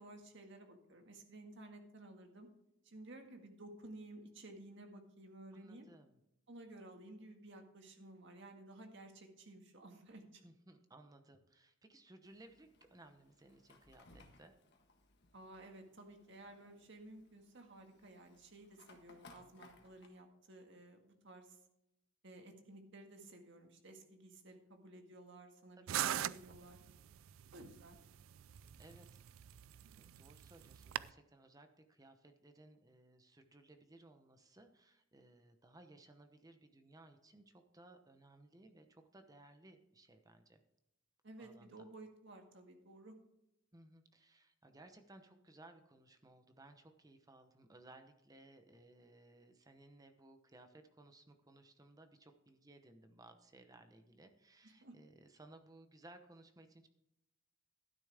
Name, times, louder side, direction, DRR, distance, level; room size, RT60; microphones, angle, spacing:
voice 1, 0.0-2.5 2.8-5.9 6.5-10.4 15.3-21.6 22.2-26.8 27.5-28.0 41.2-43.2 54.8-55.0, right 2 dB, 60° right, 4 dB, 1.9 m, -55 dB
voice 2, 5.5-6.2 10.4-14.5 25.9-26.0 28.8-29.2 29.9-40.6 41.4-41.9 43.7-56.9, right 2 dB, 20° right, 7 dB, 0.9 m, -61 dB
Fire, 12.2-20.1, left 3 dB, 55° left, 1.6 m, -65 dB
sound 1, 25.9-31.1, right 11 dB, 80° right, 0.4 m, -42 dB
12.0 x 10.0 x 3.5 m, 0.85 s
head